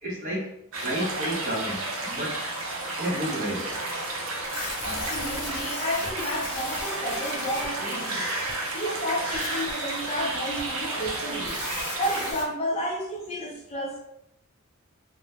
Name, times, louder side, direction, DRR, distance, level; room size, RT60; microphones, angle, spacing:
voice 1, 0.0-0.5 0.8-2.4 3.0-4.0, equal, 35° right, -4 dB, 1.0 m, -31 dB
sound 1, 0.7-12.3, right 2 dB, 60° right, 0.7 m, -32 dB
sound 2, 4.4-12.4, left 3 dB, 85° left, 0.8 m, -39 dB
voice 2, 4.8-14.0, equal, 25° left, -3 dB, 0.5 m, -32 dB
2.9 x 2.1 x 3.5 m, 0.76 s
head